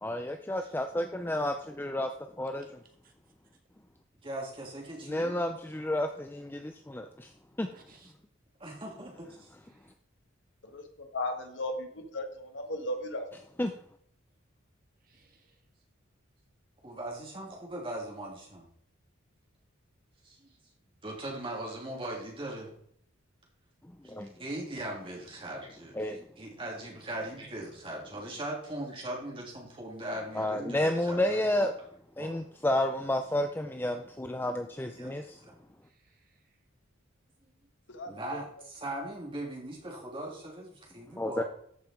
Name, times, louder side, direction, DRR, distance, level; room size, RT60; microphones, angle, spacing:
voice 1, 0.0-2.1 2.4-2.7 5.0-7.3 7.6-7.7 13.6-13.7 24.0-24.3 26.0-26.2 30.3-31.7 32.2-35.4 41.2-41.4, left 1 dB, 10° left, 6 dB, 0.5 m, -31 dB
voice 2, 4.2-5.3 8.6-9.5 16.8-18.7 20.2-20.5 21.0-22.8 24.4-26.0 26.4-31.5 32.2-32.3 34.9-35.1 35.4-35.5 38.0-41.4, right 1 dB, 25° right, -2 dB, 3.1 m, -39 dB
voice 3, 7.7-8.1 9.7-9.9 15.0-15.6 35.8-36.5, right 3 dB, 45° right, 2 dB, 2.0 m, -62 dB
voice 4, 10.7-13.2 37.9-38.1, left 1 dB, 60° left, 5 dB, 1.6 m, -36 dB
13.5 x 5.7 x 4.6 m, 0.66 s
head